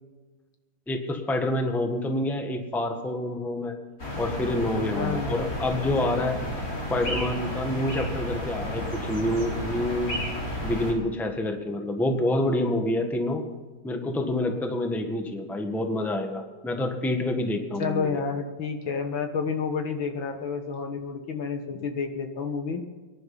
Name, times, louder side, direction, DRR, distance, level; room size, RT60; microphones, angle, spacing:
voice 1, 0.9-3.8 4.2-6.4 6.9-10.2 10.6-13.4 13.8-18.2, left 1 dB, ahead, 4 dB, 1.2 m, -27 dB
sound 1, 4.0-10.9, left 1 dB, 40° left, 4.2 m, -32 dB
voice 2, 5.0-5.3 17.8-22.8, left 5 dB, 70° left, 5 dB, 2.2 m, -30 dB
24.0 x 10.5 x 4.1 m, 1.3 s
omnidirectional pair, 2.3 m